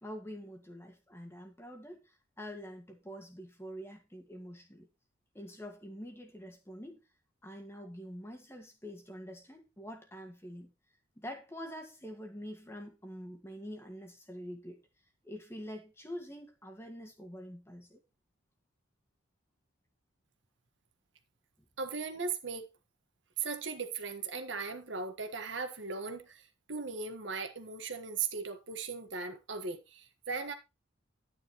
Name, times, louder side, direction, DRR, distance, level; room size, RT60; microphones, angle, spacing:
voice 1, 0.0-4.9 5.3-7.0 7.4-10.7 11.2-14.8 15.2-18.0, equal, 10° left, 1.8 m, -46 dB
voice 2, 21.8-22.7 23.4-30.5, right 5 dB, 65° right, 1.5 m, -38 dB
11.5 x 9.6 x 3.1 m
head